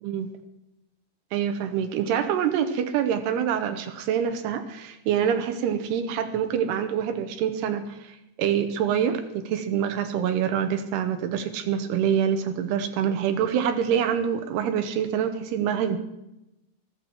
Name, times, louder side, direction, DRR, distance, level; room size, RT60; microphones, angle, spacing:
voice 1, 1.3-16.0, right 8 dB, 75° right, 8 dB, 2.8 m, -26 dB
14.5 x 14.0 x 4.5 m, 0.90 s
omnidirectional pair, 5.1 m